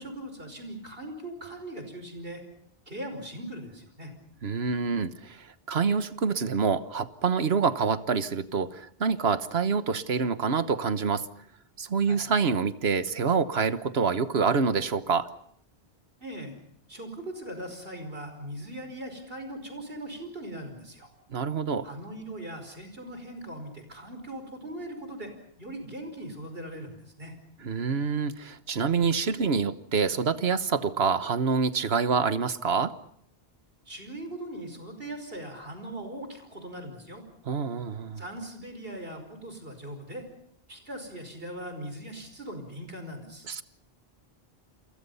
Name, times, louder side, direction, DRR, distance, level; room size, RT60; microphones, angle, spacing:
voice 1, 0.0-2.4 2.9-4.1 12.1-12.2 16.2-16.6 16.9-21.1 21.8-25.3 25.6-27.4 33.9-37.2 38.2-40.3 40.7-43.5, right 1 dB, 65° right, 7 dB, 5.4 m, -40 dB
voice 2, 4.4-11.3 11.8-15.3 21.3-21.9 27.6-32.9 37.4-38.2 43.5-43.6, right 5 dB, 85° right, 13 dB, 1.4 m, -26 dB
29.0 x 23.5 x 5.6 m, 0.69 s
omnidirectional pair, 1.0 m